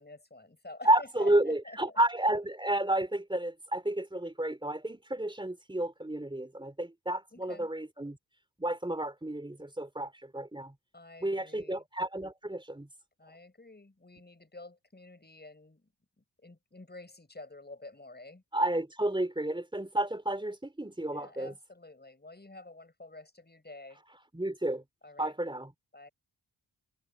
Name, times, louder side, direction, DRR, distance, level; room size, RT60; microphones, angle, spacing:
voice 1, 0.0-2.0 7.3-7.7 10.9-11.8 13.2-15.8 16.2-18.4 21.1-24.0 25.0-25.3 25.9-26.1, left 2 dB, 25° left, 6.5 m, -49 dB
voice 2, 0.9-8.2 8.6-10.7 11.2-12.9 18.5-21.5 24.3-24.8 25.2-25.7, right 1 dB, 10° right, 4.0 m, -31 dB
wide cardioid pair, 80°, 43 cm